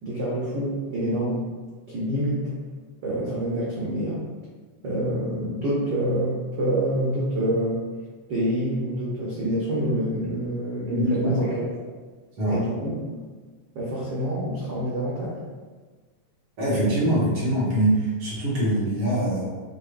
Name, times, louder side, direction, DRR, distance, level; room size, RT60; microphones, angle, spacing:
voice 1, 0.0-1.4 1.9-2.5 3.0-4.2 4.8-7.8 8.3-11.7 12.5-13.3 13.7-15.4, right 1 dB, 85° right, -7 dB, 1.0 m, -27 dB
voice 2, 10.9-11.3 12.4-12.6 16.6-19.4, right 1 dB, 55° right, -8 dB, 2.3 m, -23 dB
6.6 x 2.9 x 2.5 m, 1.4 s
omnidirectional pair, 3.3 m